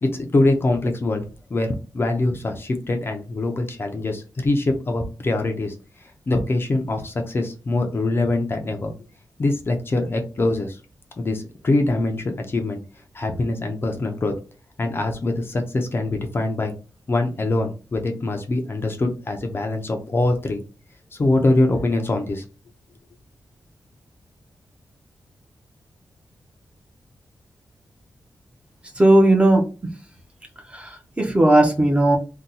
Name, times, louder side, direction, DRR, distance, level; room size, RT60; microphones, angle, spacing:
voice 1, 0.0-1.2 1.5-5.7 6.3-8.9 9.4-10.8 11.2-12.8 13.1-14.3 14.8-16.7 17.1-20.6 21.1-22.4, left 2 dB, 35° left, 4 dB, 0.5 m, -23 dB
voice 2, 29.0-29.6 30.7-32.2, right 1 dB, 15° right, 2 dB, 0.6 m, -16 dB
2.7 x 2.2 x 3.8 m, 0.34 s
wide cardioid pair, 135°, 7 cm